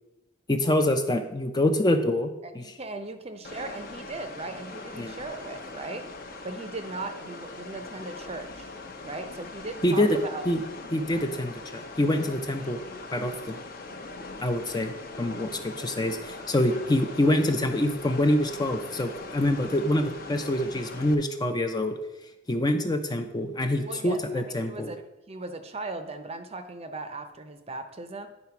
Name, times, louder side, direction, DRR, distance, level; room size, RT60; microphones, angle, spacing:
voice 1, 0.5-2.6 5.0-5.2 9.8-10.2 10.5-10.6 10.9-12.8 13.1-13.6 14.4-21.9 22.5-24.9, left 1 dB, 20° left, 6 dB, 0.5 m, -26 dB
voice 2, 2.4-6.1 6.4-8.7 9.0-10.4 23.8-28.3, right 3 dB, 30° right, 8 dB, 0.6 m, -38 dB
sound 1, 3.4-21.1, left 3 dB, 45° left, 0.8 m, -41 dB
9.7 x 4.1 x 5.8 m, 0.99 s
head